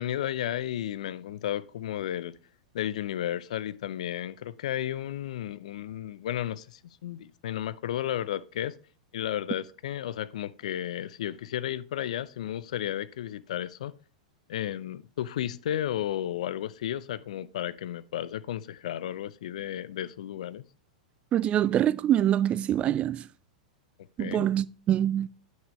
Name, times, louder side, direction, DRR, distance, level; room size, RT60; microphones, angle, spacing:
voice 1, 0.0-2.3 2.7-8.8 9.1-13.9 14.5-20.6 24.2-24.5, left 11 dB, 70° left, 0.5 m, -33 dB
voice 2, 21.3-23.3 24.2-25.3, right 11 dB, 30° right, 0.4 m, -25 dB
9.6 x 6.2 x 3.1 m
hypercardioid pair, 100°, 4 cm